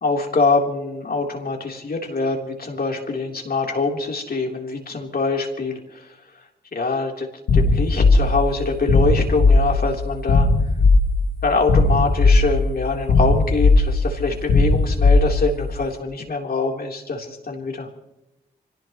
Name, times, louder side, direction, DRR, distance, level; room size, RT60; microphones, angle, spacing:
voice 1, 0.0-6.1 6.7-7.3 7.5-10.5 11.4-17.9, left 3 dB, 55° left, 1 dB, 3.6 m, -24 dB
sound 1, 7.5-15.7, left 3 dB, 85° left, 2.0 m, -17 dB
26.0 x 18.0 x 3.1 m, 0.91 s
supercardioid pair, 40°, 19 cm